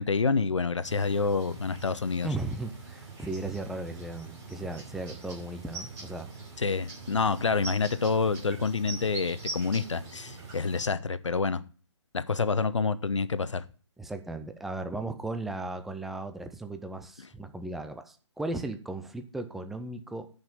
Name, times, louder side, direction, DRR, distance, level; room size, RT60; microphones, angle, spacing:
voice 1, 0.0-2.3 6.6-11.6 12.1-13.6, left 4 dB, 75° left, 14 dB, 0.9 m, -28 dB
sound 1, 0.8-10.8, right 3 dB, 20° right, 4.3 m, -43 dB
voice 2, 2.2-6.3 14.0-20.3, right 2 dB, ahead, 8 dB, 0.5 m, -36 dB
10.0 x 5.6 x 7.0 m, 0.38 s
figure-of-eight pair, 140°, 15 cm